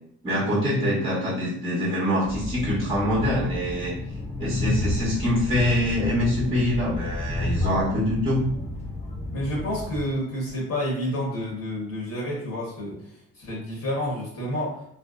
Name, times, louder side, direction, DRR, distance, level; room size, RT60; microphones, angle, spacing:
voice 1, 0.2-3.9 4.4-8.5, left 1 dB, 15° right, -7 dB, 1.0 m, -24 dB
Train, 2.2-10.0, left 1 dB, 20° left, 0.8 m, -31 dB
voice 2, 7.4-8.0 9.3-14.8, equal, 55° left, -4 dB, 1.1 m, -30 dB
2.6 x 2.0 x 2.4 m, 0.71 s
supercardioid pair, 70°, 32 cm